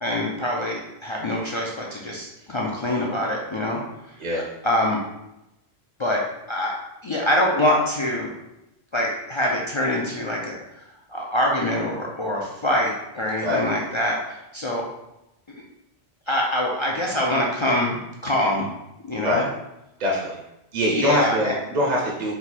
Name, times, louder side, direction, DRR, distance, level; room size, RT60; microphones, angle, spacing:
voice 1, 0.0-3.8 4.1-5.0 6.0-8.3 8.9-10.8 11.1-14.9 15.5-15.6 16.3-18.0 18.2-18.7 19.0-19.4 20.9-21.5, left 1 dB, 40° left, -3 dB, 0.4 m, -25 dB
voice 2, 20.0-20.4 20.7-22.3, left 1 dB, 45° right, -2 dB, 0.7 m, -23 dB
4.5 x 2.2 x 4.1 m, 0.89 s
omnidirectional pair, 1.1 m